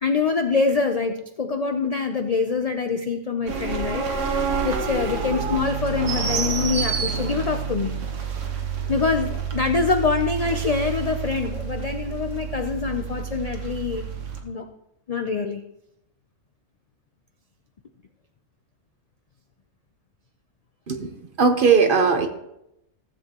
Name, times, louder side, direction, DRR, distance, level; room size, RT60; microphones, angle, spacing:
voice 1, 0.0-7.9 8.9-14.1 14.4-14.7 15.1-15.6, left 4 dB, 85° left, 7 dB, 0.3 m, -25 dB
sound 1, 3.5-14.4, right 6 dB, 65° right, 1.5 m, -28 dB
voice 2, 21.4-22.3, right 5 dB, 45° right, 6 dB, 0.9 m, -18 dB
15.5 x 7.7 x 2.9 m, 0.83 s
omnidirectional pair, 1.4 m